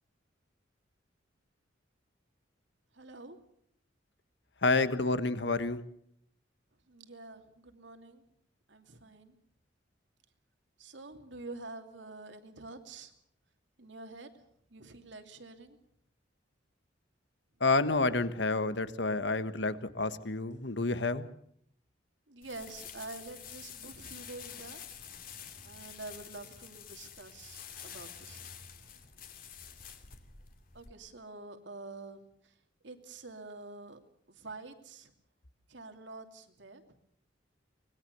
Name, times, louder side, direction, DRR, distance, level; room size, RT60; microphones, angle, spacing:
voice 1, 2.9-3.4 6.9-8.2 8.7-9.3 10.8-13.1 13.8-14.3 14.7-15.8 22.3-24.8 25.6-28.4 30.7-32.5 32.8-34.0 34.3-35.1 35.7-36.8, right 2 dB, 70° right, 6 dB, 2.8 m, -47 dB
voice 2, 4.6-5.8 17.6-21.3, left 3 dB, 65° left, 12 dB, 1.4 m, -29 dB
sound 1, 22.4-30.9, left 8 dB, 50° left, 2.6 m, -48 dB
24.5 x 21.0 x 6.8 m, 0.70 s
head